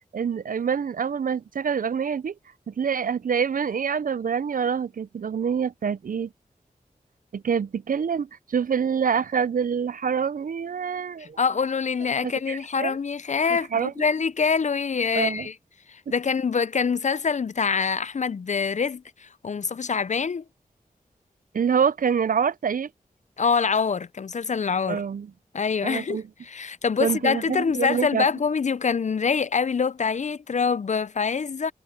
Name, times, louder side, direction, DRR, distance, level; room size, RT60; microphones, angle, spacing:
voice 1, 0.1-2.3 2.7-6.3 7.3-11.4 12.2-13.0 13.7-13.9 15.2-15.5 16.1-16.2 21.5-22.9 24.9-25.3 25.8-26.2 27.0-28.3, right 7 dB, 70° right, 0.5 m, -26 dB
voice 2, 11.2-15.5 15.9-20.4 23.4-25.0 25.5-31.7, left 5 dB, 55° left, 0.5 m, -25 dB
wide cardioid pair, 55°, 15 cm